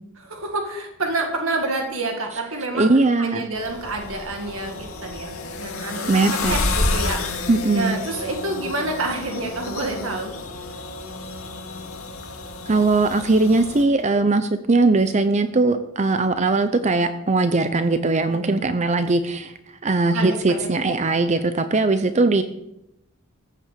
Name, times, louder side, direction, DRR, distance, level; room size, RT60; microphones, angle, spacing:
voice 1, 0.2-7.2 7.7-10.3 14.1-14.3 18.3-18.5 20.1-20.7 21.3-21.4, right 2 dB, 70° right, 3 dB, 2.0 m, -28 dB
voice 2, 2.7-3.4 6.1-6.6 7.5-8.0 12.7-19.5 19.8-22.4, right 3 dB, 35° right, 10 dB, 0.6 m, -20 dB
sound 1, 3.5-13.8, left 3 dB, 85° left, 2.1 m, -30 dB
15.0 x 7.4 x 6.8 m, 0.84 s
head